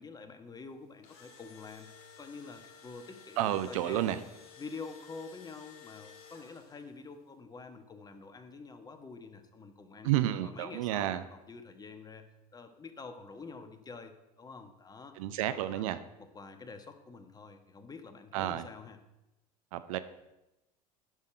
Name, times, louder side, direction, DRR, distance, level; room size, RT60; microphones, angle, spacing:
voice 1, 0.0-4.2 4.6-10.1 10.4-15.8 16.2-19.0, left 4 dB, 20° left, 7 dB, 1.2 m, -47 dB
Engine / Drill, 0.8-7.0, left 6 dB, 55° left, 2.3 m, -54 dB
voice 2, 3.4-4.2 10.0-11.2 15.2-16.0 18.3-18.6 19.7-20.0, right 13 dB, 60° right, 12 dB, 0.6 m, -30 dB
10.0 x 6.4 x 5.0 m, 0.96 s
figure-of-eight pair, 70°, 20 cm